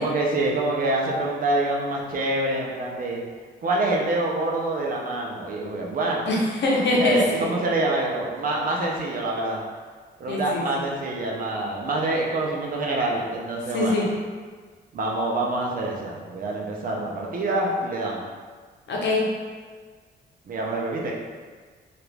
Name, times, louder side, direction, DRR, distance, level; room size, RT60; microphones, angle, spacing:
voice 1, 0.0-3.2 3.6-6.2 7.0-9.6 10.2-14.0 14.9-18.2 20.5-21.1, right 2 dB, 50° right, -2 dB, 0.6 m, -26 dB
voice 2, 6.3-7.5 10.3-10.8 13.7-14.0 18.9-19.2, left 2 dB, 75° left, -3 dB, 0.8 m, -23 dB
2.8 x 2.5 x 3.3 m, 1.5 s
cardioid pair, 105°, 19 cm